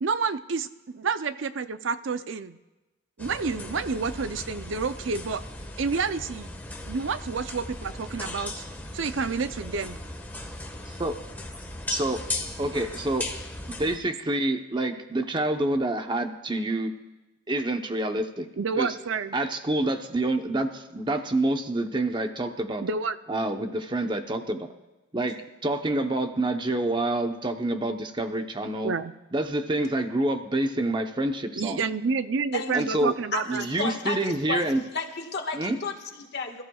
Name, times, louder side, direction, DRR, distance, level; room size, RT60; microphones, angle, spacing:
voice 1, 0.0-2.6 3.2-5.4 5.8-6.5 6.9-8.6 8.9-10.0 18.6-19.3 22.8-23.2 28.8-29.1 31.6-33.7, right 5 dB, 70° right, 12 dB, 0.5 m, -29 dB
sound 1, 3.2-14.0, left 2 dB, 10° left, 1.4 m, -37 dB
voice 2, 10.9-11.2 11.9-12.2 12.6-13.3 13.8-16.9 17.5-18.5 18.8-18.9 19.3-22.8 23.3-24.7 25.1-28.9 29.3-31.8 32.7-33.1 33.5-34.8 35.5-35.8, right 1 dB, 25° right, 6 dB, 0.9 m, -27 dB
voice 3, 32.5-32.8 33.3-36.6, left 4 dB, 55° left, 3 dB, 1.7 m, -33 dB
26.5 x 14.5 x 2.4 m, 1.1 s
head